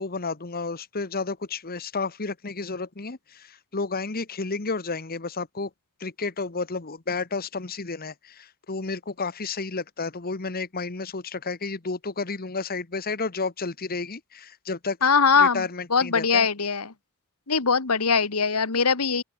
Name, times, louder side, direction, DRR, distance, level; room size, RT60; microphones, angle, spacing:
voice 1, 0.0-5.7 6.0-15.0 15.4-16.5, left 4 dB, 45° left, 1.2 m, -31 dB
voice 2, 15.0-15.6 15.9-16.9 17.5-19.2, left 5 dB, 90° left, 1.7 m, -21 dB
open air
head